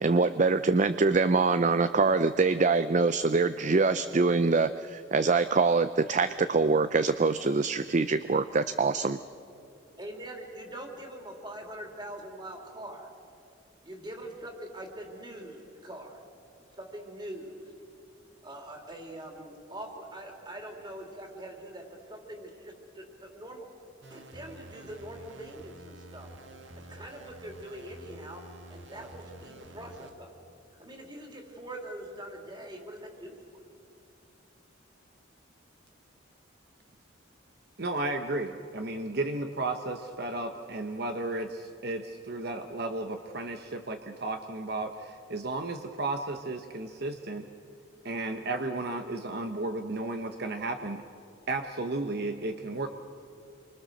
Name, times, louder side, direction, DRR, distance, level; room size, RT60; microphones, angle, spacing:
voice 1, 0.0-9.2, right 4 dB, 40° right, 12 dB, 0.5 m, -24 dB
voice 2, 10.0-13.1 13.8-16.2 16.7-17.7 18.4-23.7 24.1-26.3 26.7-30.3 30.8-33.6, right 1 dB, 25° right, 1 dB, 3.4 m, -43 dB
sound 1, 24.0-30.1, right 1 dB, 75° right, 2.0 m, -49 dB
voice 3, 37.8-47.5 48.0-51.0 51.5-52.9, right 2 dB, 55° right, 6 dB, 1.0 m, -33 dB
28.5 x 24.5 x 6.5 m, 2.5 s
head